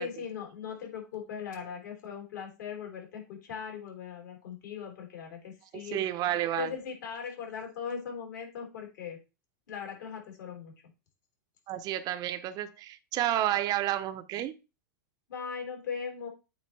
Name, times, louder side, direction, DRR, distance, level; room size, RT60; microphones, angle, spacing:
voice 1, 0.0-6.0 6.5-9.2 9.7-10.7 15.3-16.3, left 7 dB, 65° left, 3.5 m, -39 dB
voice 2, 5.9-6.7 11.7-14.5, right 13 dB, 40° right, 0.6 m, -30 dB
8.6 x 2.9 x 4.2 m
hypercardioid pair, 105°, 11 cm